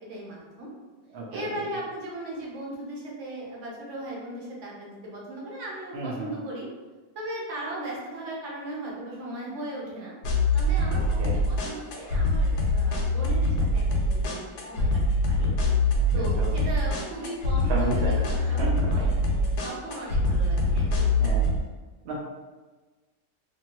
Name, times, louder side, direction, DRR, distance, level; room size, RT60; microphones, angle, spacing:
voice 1, 0.1-0.7 1.3-6.7 7.1-10.1 10.5-15.0 15.3-15.5 16.1-19.1 19.6-21.3, right 1 dB, 55° right, -4 dB, 1.0 m, -37 dB
voice 2, 1.1-1.5 5.9-6.4 10.9-11.3 15.9-16.5 17.7-18.2 18.4-18.9 21.2-21.5 22.0-22.2, right 2 dB, 75° right, -2 dB, 0.6 m, -33 dB
sound 1, 10.2-21.6, left 1 dB, 80° left, 1.1 m, -24 dB
2.7 x 2.6 x 2.8 m, 1.3 s
omnidirectional pair, 1.7 m